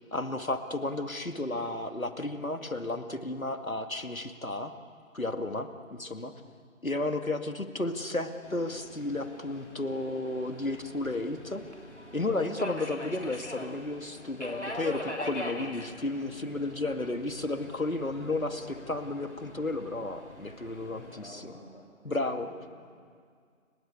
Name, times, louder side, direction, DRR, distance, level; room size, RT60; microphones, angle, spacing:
voice 1, 0.0-4.7 5.1-5.7 6.0-6.3 6.8-11.6 12.1-21.0 21.3-21.5 22.0-22.5, left 2 dB, 75° left, 7 dB, 2.4 m, -33 dB
Subway metro underground, 8.4-21.3, left 1 dB, 55° left, 3.3 m, -43 dB
voice 2, 16.4-16.9 18.7-18.9 20.8-23.0, left 1 dB, 35° left, -1 dB, 5.4 m, -53 dB
30.0 x 16.5 x 9.1 m, 2.1 s
figure-of-eight pair, 175°, 42 cm